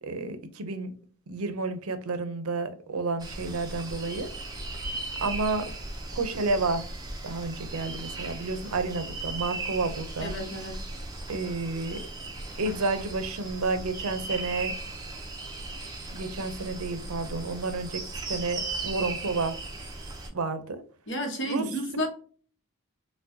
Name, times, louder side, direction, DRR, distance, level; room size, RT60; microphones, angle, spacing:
voice 1, 0.0-0.9 1.3-4.3 5.2-5.7 6.1-6.8 7.2-10.3 11.3-12.0 12.6-14.7 16.1-18.0 18.3-19.5 20.3-20.8 21.4-21.6, right 3 dB, 80° right, 0.6 m, -30 dB
sound 1, 3.2-20.3, right 2 dB, 15° right, 0.5 m, -37 dB
voice 2, 10.2-10.8 21.1-22.1, equal, 55° left, 1.0 m, -31 dB
4.5 x 2.3 x 2.7 m
head